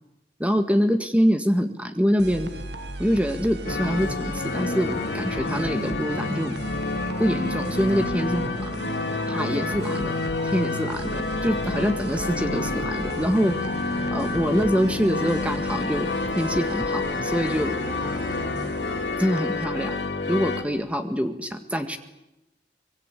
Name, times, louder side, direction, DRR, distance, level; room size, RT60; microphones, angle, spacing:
voice 1, 0.4-2.5 3.0-6.6 7.2-8.7 9.3-10.1 10.4-13.6 14.1-17.8 19.2-20.0 20.3-22.0, equal, 10° right, 7 dB, 1.8 m, -25 dB
sound 1, 2.2-19.6, right 2 dB, 85° right, 1.8 m, -37 dB
sound 2, 3.6-20.6, left 3 dB, 85° left, 2.8 m, -29 dB
24.5 x 22.0 x 8.4 m, 0.95 s
head